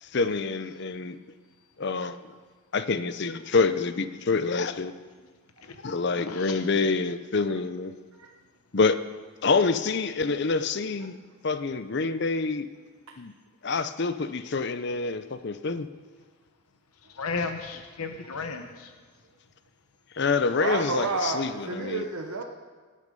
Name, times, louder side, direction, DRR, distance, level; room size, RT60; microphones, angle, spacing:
voice 1, 0.0-1.2 1.8-2.2 2.7-4.9 5.8-7.9 8.7-9.0 9.4-11.2 11.4-12.7 13.2-13.3 13.6-15.9 20.1-22.0, left 4 dB, 50° left, 12 dB, 0.6 m, -26 dB
voice 2, 6.2-6.6 17.2-18.9, left 4 dB, 90° left, 7 dB, 1.0 m, -34 dB
voice 3, 20.6-22.4, right 3 dB, 85° right, 2 dB, 1.0 m, -30 dB
18.5 x 8.6 x 5.3 m, 1.5 s
head